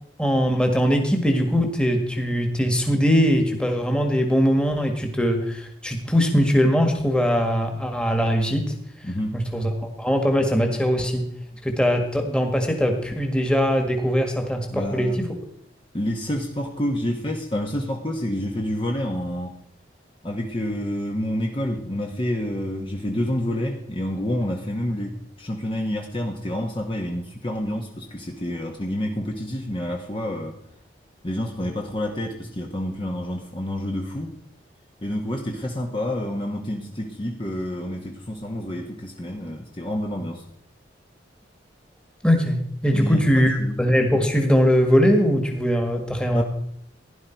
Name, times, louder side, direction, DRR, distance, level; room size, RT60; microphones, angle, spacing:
voice 1, 0.2-8.7 9.3-11.3 11.6-15.3 42.2-46.4, equal, 5° left, 3 dB, 1.8 m, -21 dB
voice 2, 9.0-9.4 14.7-15.2 15.9-19.5 20.2-30.6 31.2-34.3 35.0-40.4 42.9-43.8 46.3-46.4, left 1 dB, 25° left, 1 dB, 1.2 m, -28 dB
15.5 x 11.5 x 4.6 m, 0.71 s
head